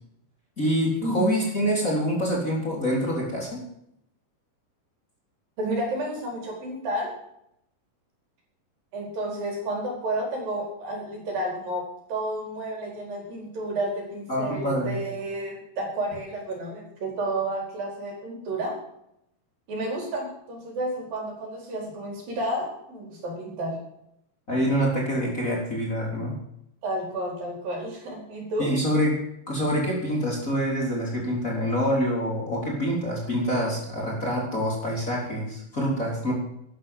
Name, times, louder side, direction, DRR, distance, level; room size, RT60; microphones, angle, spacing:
voice 1, 0.6-3.6 14.3-15.0 24.5-26.4 28.6-29.2 29.5-36.3, equal, 20° left, -2 dB, 4.0 m, -26 dB
voice 2, 5.6-7.2 8.9-18.8 19.7-23.8 26.8-28.7, right 1 dB, 65° right, 0 dB, 6.2 m, -31 dB
13.0 x 11.0 x 7.7 m, 0.76 s
omnidirectional pair, 4.4 m